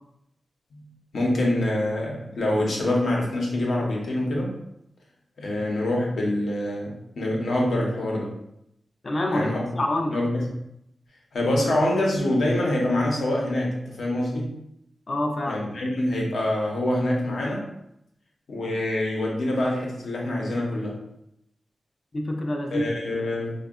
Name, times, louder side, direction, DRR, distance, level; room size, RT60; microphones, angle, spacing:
voice 1, 1.1-4.5 5.4-8.3 9.3-9.7 10.1-10.4 11.3-14.5 15.5-17.7 18.5-21.0 22.7-23.5, left 1 dB, 80° left, -2 dB, 0.7 m, -25 dB
voice 2, 9.0-10.2 15.1-15.6 22.1-22.9, left 1 dB, 40° left, 2 dB, 0.4 m, -26 dB
3.5 x 2.2 x 2.3 m, 0.79 s
wide cardioid pair, 165°, 0 cm